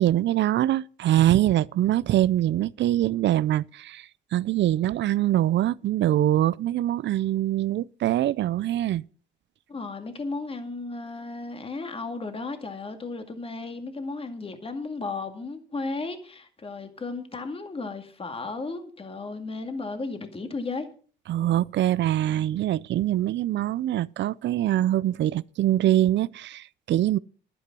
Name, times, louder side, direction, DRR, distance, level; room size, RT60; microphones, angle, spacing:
voice 1, 0.0-4.1 4.3-9.0 21.3-27.2, right 13 dB, 65° right, 0.5 m, -23 dB
voice 2, 9.7-20.9, left 3 dB, 30° left, 2.1 m, -34 dB
11.0 x 9.9 x 6.1 m
cardioid pair, 90°, 20 cm